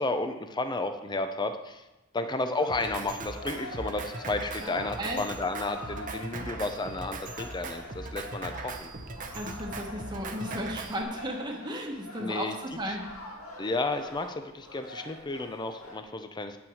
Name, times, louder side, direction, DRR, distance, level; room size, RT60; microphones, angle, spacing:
voice 1, 0.0-1.8 2.1-8.9 12.2-12.5 13.6-16.6, left 2 dB, 20° left, 8 dB, 0.5 m, -32 dB
sound 1, 2.5-16.0, left 1 dB, 80° left, 1.9 m, -45 dB
Drum kit, 2.7-11.0, right 3 dB, 40° right, 0.8 m, -40 dB
voice 2, 4.6-5.2 9.3-13.0, equal, 20° right, -1 dB, 1.1 m, -35 dB
8.8 x 5.9 x 6.3 m, 1.0 s
head